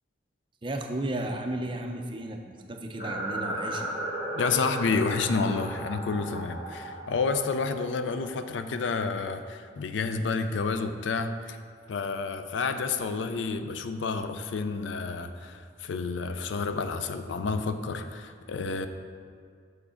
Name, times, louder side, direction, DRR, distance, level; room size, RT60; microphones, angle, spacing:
voice 1, 0.6-3.9, right 1 dB, 25° right, 4 dB, 0.5 m, -34 dB
sound 1, 3.0-8.9, right 1 dB, 55° left, 1.5 m, -36 dB
voice 2, 4.3-11.6 11.9-18.9, left 4 dB, 80° left, 9 dB, 0.4 m, -30 dB
6.4 x 4.8 x 4.9 m, 2.2 s
head